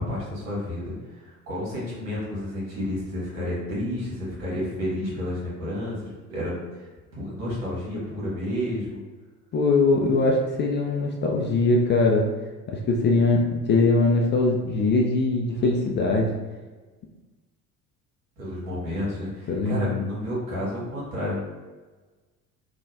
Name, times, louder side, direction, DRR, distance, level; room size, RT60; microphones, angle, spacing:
voice 1, 0.0-9.0 18.4-21.4, left 1 dB, 75° right, -6 dB, 1.4 m, -31 dB
voice 2, 9.5-12.3 12.7-16.4 19.5-20.1, left 3 dB, 25° left, 0 dB, 0.4 m, -21 dB
3.3 x 2.2 x 2.7 m, 1.3 s
figure-of-eight pair, 60°, 46 cm